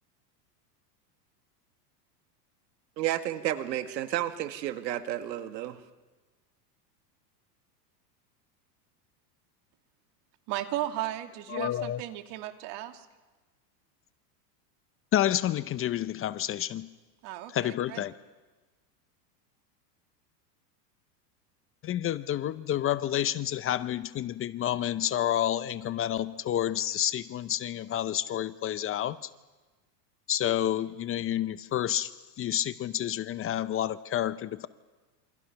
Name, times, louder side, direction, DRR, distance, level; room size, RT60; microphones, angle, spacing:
voice 1, 3.0-5.8, right 12 dB, 85° right, 9 dB, 1.9 m, -31 dB
voice 2, 10.5-13.1 17.2-18.0, right 14 dB, 55° right, 6 dB, 2.6 m, -35 dB
voice 3, 11.5-12.0 15.1-16.9 17.5-18.1 21.8-29.3 30.3-32.1 32.4-34.7, left 11 dB, 25° left, 15 dB, 0.7 m, -29 dB
28.0 x 25.0 x 5.8 m, 1.3 s
supercardioid pair, 115°, 49 cm